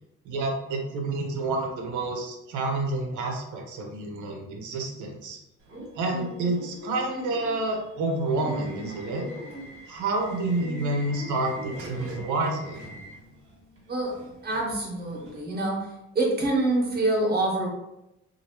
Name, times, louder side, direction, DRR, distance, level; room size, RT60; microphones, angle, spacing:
voice 1, 0.2-5.4 6.0-9.2 9.9-12.8, right 2 dB, 80° right, 1 dB, 0.8 m, -29 dB
Subway metro underground / Alarm, 5.6-15.4, equal, 50° right, 1.4 m, -42 dB
voice 2, 14.4-15.9 16.1-17.7, right 2 dB, 35° right, -2 dB, 1.3 m, -26 dB
2.8 x 2.7 x 2.9 m, 0.88 s
cardioid pair, 75°, 30 cm